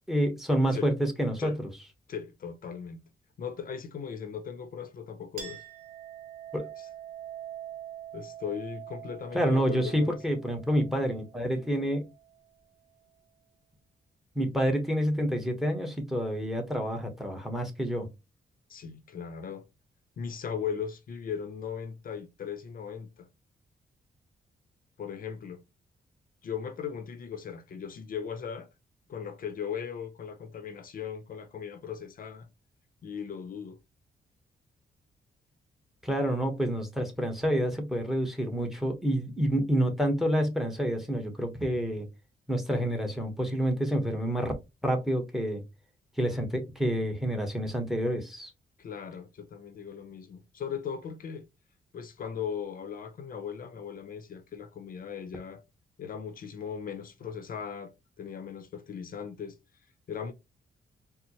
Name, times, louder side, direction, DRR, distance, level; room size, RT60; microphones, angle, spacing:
voice 1, 0.1-1.5 6.5-6.7 9.3-12.1 14.3-18.1 36.0-42.1 42.5-44.5 44.8-45.6 46.2-48.5, equal, ahead, 1.0 m, -28 dB
voice 2, 2.1-3.0 3.4-5.6 6.8-6.9 8.1-10.2 18.7-19.6 20.2-23.3 25.0-25.6 26.4-28.7 29.1-32.5 33.0-33.8 48.8-51.5 51.9-55.6 56.0-57.9 58.2-59.6 60.1-60.3, left 7 dB, 55° left, 0.6 m, -38 dB
Chink clink, 5.4-12.4, right 10 dB, 55° right, 1.1 m, -45 dB
4.3 x 2.0 x 2.8 m
cardioid pair, 110°, 17 cm